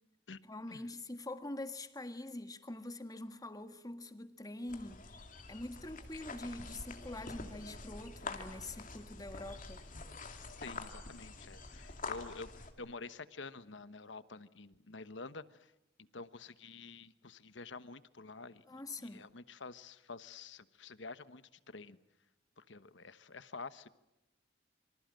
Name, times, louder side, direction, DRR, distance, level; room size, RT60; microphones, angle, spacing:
voice 1, 0.4-5.0 5.5-9.8 18.7-19.3, left 2 dB, 20° left, 1.6 m, -45 dB
sound 1, 4.7-12.7, left 3 dB, 45° left, 2.6 m, -46 dB
voice 2, 10.6-12.5 12.8-15.7 16.0-22.0 22.6-23.9, left 3 dB, 70° left, 1.2 m, -49 dB
26.5 x 25.0 x 7.6 m
head